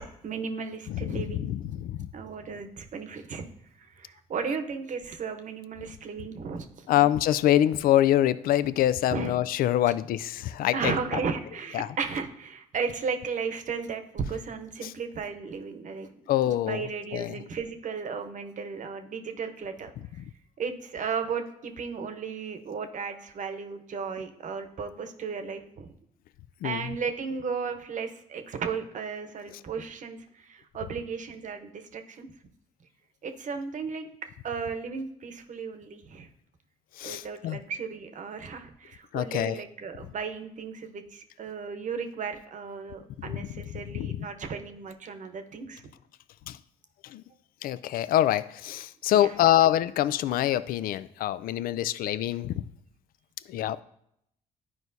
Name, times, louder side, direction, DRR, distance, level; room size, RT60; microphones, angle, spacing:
voice 1, 0.2-1.5 2.1-3.4 3.8-7.1 9.1-9.4 10.7-16.1 16.5-19.9 20.6-25.9 26.6-32.3 33.2-34.1 34.4-36.3 37.0-45.8 49.1-49.3, right 5 dB, 55° right, 7 dB, 0.9 m, -35 dB
voice 2, 0.9-2.1 6.9-10.9 11.7-11.9 14.8-14.9 16.3-16.8 17.1-17.4 26.6-26.9 37.0-37.6 39.1-39.6 43.4-43.5 43.7-44.3 46.5-46.6 47.1-47.2 47.6-52.5 53.5-53.8, left 12 dB, 70° left, 16 dB, 0.4 m, -25 dB
11.5 x 4.7 x 2.7 m, 0.74 s
supercardioid pair, 60°, 16 cm